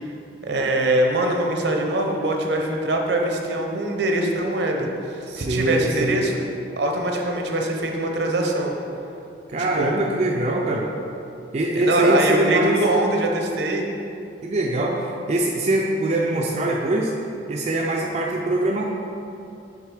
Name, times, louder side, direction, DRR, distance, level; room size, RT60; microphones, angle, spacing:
voice 1, 0.4-4.9 5.4-6.4 6.8-8.7 9.5-10.1 10.7-10.8 11.7-13.8, right 1 dB, 70° right, 2 dB, 0.7 m, -23 dB
voice 2, 5.3-6.2 9.5-10.9 11.5-12.8 14.4-17.1 17.5-18.8, right 1 dB, 40° right, -1 dB, 0.4 m, -23 dB
6.6 x 3.5 x 4.8 m, 2.6 s
head